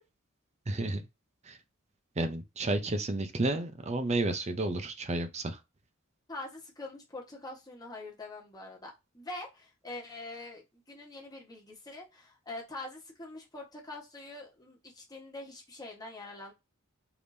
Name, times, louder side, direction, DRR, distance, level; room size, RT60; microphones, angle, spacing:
voice 1, 0.7-1.0 1.5-1.6 2.2-5.6, right 2 dB, 35° right, 0.6 m, -31 dB
voice 2, 6.3-16.5, left 2 dB, 20° left, 1.3 m, -44 dB
4.9 x 3.5 x 2.7 m
head